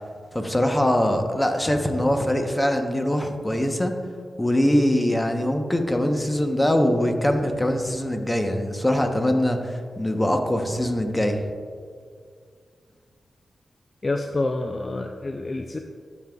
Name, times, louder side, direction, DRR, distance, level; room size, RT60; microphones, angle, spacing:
voice 1, 0.3-3.9 4.4-11.4, left 1 dB, 15° left, 4 dB, 1.0 m, -22 dB
voice 2, 14.0-15.8, left 2 dB, 40° left, 5 dB, 0.4 m, -27 dB
13.0 x 5.4 x 2.4 m, 2.1 s
cardioid pair, 50°, 0 cm